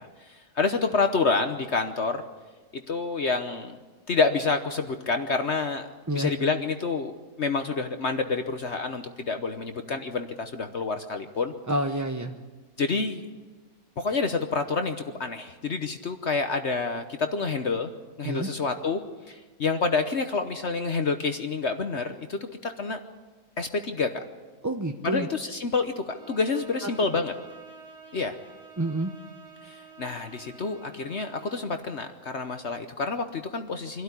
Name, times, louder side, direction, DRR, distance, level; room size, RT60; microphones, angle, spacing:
voice 1, 0.0-2.2 2.7-3.8 4.1-5.9 6.1-11.5 12.8-13.3 14.0-17.9 18.2-19.0 19.3-23.0 23.6-24.1 25.0-27.3 28.1-28.4 29.6-34.0, left 4 dB, 50° left, 7 dB, 1.2 m, -28 dB
voice 2, 11.7-12.4 18.2-18.5 24.6-25.3 28.8-29.1, right 1 dB, 20° right, 5 dB, 0.5 m, -28 dB
Bowed string instrument, 26.1-31.8, right 4 dB, 45° right, 2.7 m, -49 dB
24.5 x 13.0 x 9.7 m, 1.3 s
omnidirectional pair, 1.6 m